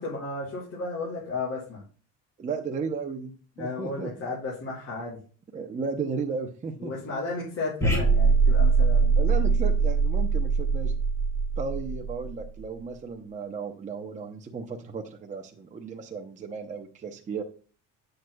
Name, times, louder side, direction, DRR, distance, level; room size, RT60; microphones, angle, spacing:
voice 1, 0.0-1.8 3.6-5.2 6.8-9.4, left 3 dB, 45° left, -6 dB, 5.0 m, -34 dB
voice 2, 2.4-3.3 3.6-4.3 5.5-6.9 9.2-10.9 11.6-17.4, right 5 dB, 20° right, 3 dB, 0.8 m, -34 dB
sound 1, 7.8-12.4, right 4 dB, 10° left, 3.9 m, -22 dB
11.5 x 7.9 x 2.3 m, 0.39 s
cardioid pair, 125°, 34 cm